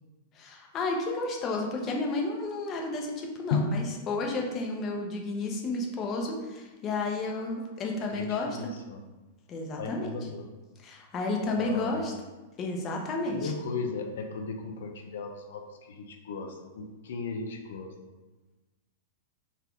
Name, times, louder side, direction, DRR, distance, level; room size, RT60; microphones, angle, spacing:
voice 1, 0.3-8.6 9.5-10.1 10.8-12.1 12.6-13.5, left 2 dB, 35° left, 1 dB, 1.0 m, -32 dB
voice 2, 8.1-9.0 9.8-10.5 11.6-12.0 13.3-17.9, left 5 dB, 75° left, 4 dB, 0.7 m, -35 dB
4.2 x 2.7 x 4.6 m, 1.2 s
hypercardioid pair, 115°, 0 cm